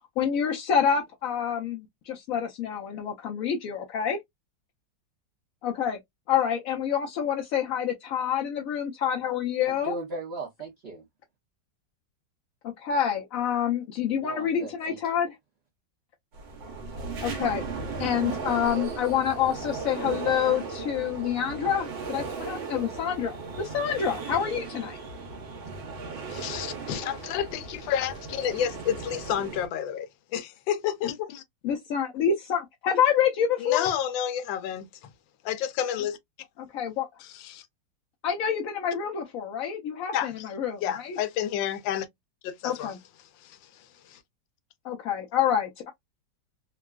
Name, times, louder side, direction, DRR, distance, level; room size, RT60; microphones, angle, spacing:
voice 1, 0.2-4.2 5.6-6.0 6.3-9.9 12.6-15.4 17.2-17.6 18.0-25.0 31.6-33.9 36.7-37.1 38.2-41.2 42.6-43.0 44.8-45.9, left 8 dB, 70° left, 0.8 m, -27 dB
voice 2, 9.7-11.0 14.2-15.0, right 3 dB, 55° right, 0.7 m, -37 dB
sound 1, 16.3-29.7, right 4 dB, 85° right, 1.6 m, -36 dB
voice 3, 26.3-31.4 33.6-35.1 35.4-36.2 37.2-37.6 40.1-40.4 40.8-42.1 42.4-42.9 43.4-44.2, left 9 dB, 90° left, 1.3 m, -30 dB
3.7 x 2.2 x 2.3 m
omnidirectional pair, 2.0 m